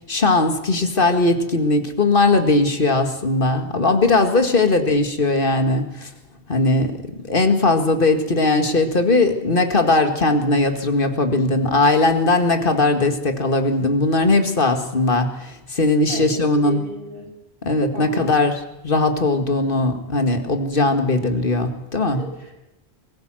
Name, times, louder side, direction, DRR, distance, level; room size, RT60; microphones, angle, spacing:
voice 1, 0.1-6.1 6.5-7.0 7.3-16.8 17.6-22.3, left 2 dB, 55° left, 7 dB, 2.2 m, -19 dB
voice 2, 4.3-4.7 5.2-5.5 16.1-17.3 17.9-18.3 22.1-22.5, right 1 dB, 60° right, 0 dB, 7.1 m, -36 dB
22.5 x 15.5 x 7.6 m, 0.95 s
omnidirectional pair, 1.1 m